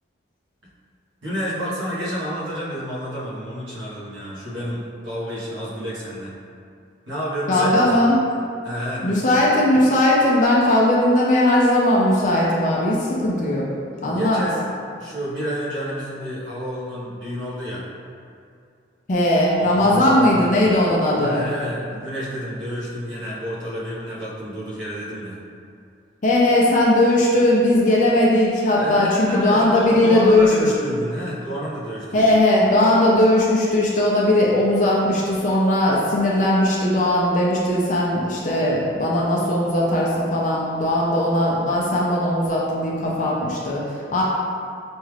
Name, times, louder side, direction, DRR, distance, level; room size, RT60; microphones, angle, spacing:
voice 1, 1.2-6.4 7.1-8.0 8.6-9.1 14.1-14.7 15.0-17.9 19.6-20.6 21.2-25.4 28.8-32.4, equal, 85° right, -8 dB, 1.2 m, -30 dB
voice 2, 7.5-8.2 9.0-13.7 14.0-14.4 19.1-21.4 26.2-30.7 32.1-43.8 44.1-44.2, left 1 dB, 40° left, -4 dB, 0.5 m, -18 dB
5.2 x 2.4 x 3.2 m, 2.4 s
head